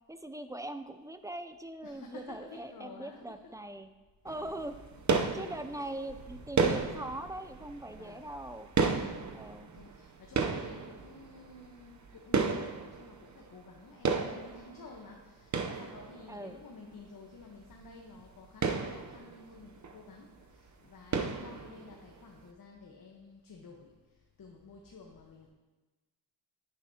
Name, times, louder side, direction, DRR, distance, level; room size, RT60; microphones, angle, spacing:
voice 1, 0.1-3.9 4.2-4.8 5.3-8.7 9.3-9.7 16.3-16.6, right 1 dB, 10° right, 9 dB, 0.4 m, -41 dB
voice 2, 1.8-3.4 5.3-5.7 7.9-8.3 8.9-23.9 24.4-25.5, left 3 dB, 50° left, 0 dB, 1.2 m, -52 dB
sound 1, 4.3-13.8 14.1-16.5 17.0-17.1 17.4-17.5 17.7-17.9 18.3-20.2 20.4-20.7 21.1-22.1, right 5 dB, 40° right, 0.8 m, -33 dB
9.8 x 9.4 x 2.9 m, 1.2 s
cardioid pair, 90°, 44 cm